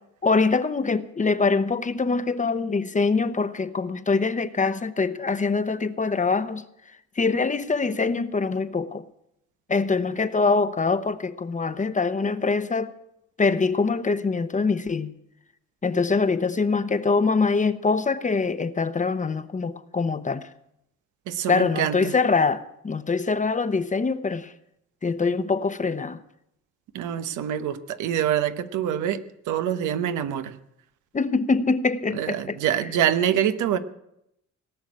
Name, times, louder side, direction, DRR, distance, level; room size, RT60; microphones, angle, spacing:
voice 1, 0.2-6.6 7.2-9.0 9.7-13.0 13.4-15.1 15.8-20.4 21.5-24.5 25.0-26.2 31.1-32.6, left 4 dB, 25° left, 0.9 m, -24 dB
voice 2, 21.3-22.1 26.9-29.2 29.5-30.6 32.1-33.8, right 10 dB, 85° right, 1.0 m, -25 dB
18.5 x 6.3 x 9.7 m
cardioid pair, 90°, 30 cm